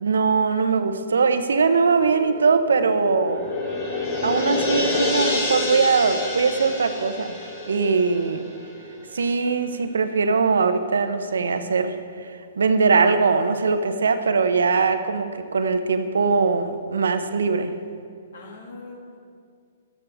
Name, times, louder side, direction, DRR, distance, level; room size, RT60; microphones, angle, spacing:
voice 1, 0.0-3.5 4.2-8.5 9.1-17.7, right 4 dB, 80° right, 9 dB, 0.8 m, -21 dB
sound 1, 2.1-9.1 9.4-9.5, left 2 dB, 40° left, 2.6 m, -28 dB
voice 2, 7.9-8.5 18.3-19.2, left 3 dB, 65° left, 1 dB, 2.3 m, -43 dB
13.5 x 12.5 x 3.5 m, 2.3 s
hypercardioid pair, 130°, 0 cm